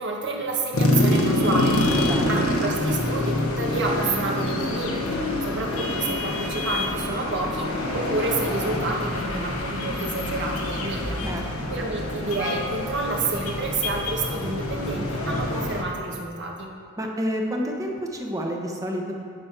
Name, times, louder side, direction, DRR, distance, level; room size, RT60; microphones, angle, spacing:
voice 1, 0.0-11.2 11.7-16.7, right 3 dB, 60° right, 0 dB, 1.6 m, -29 dB
sound 1, 0.7-15.8, left 1 dB, 85° left, 1.3 m, -26 dB
voice 2, 1.8-2.5 11.2-11.7 17.0-19.2, equal, 15° right, 0 dB, 1.2 m, -29 dB
11.0 x 6.2 x 6.0 m, 2.3 s
head